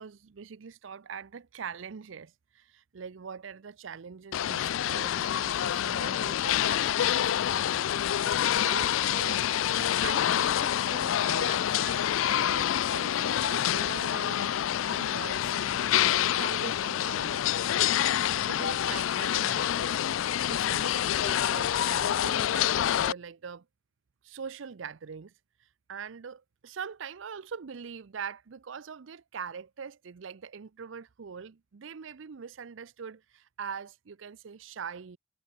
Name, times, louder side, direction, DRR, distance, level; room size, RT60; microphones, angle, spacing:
voice 1, 0.0-7.7 8.5-14.6 14.9-17.5 18.4-19.9 20.4-23.6 24.2-25.3 25.9-35.2, right 6 dB, 75° right, 0.5 m, -43 dB
sound 1, 4.3-23.1, left 10 dB, 80° left, 0.4 m, -27 dB
head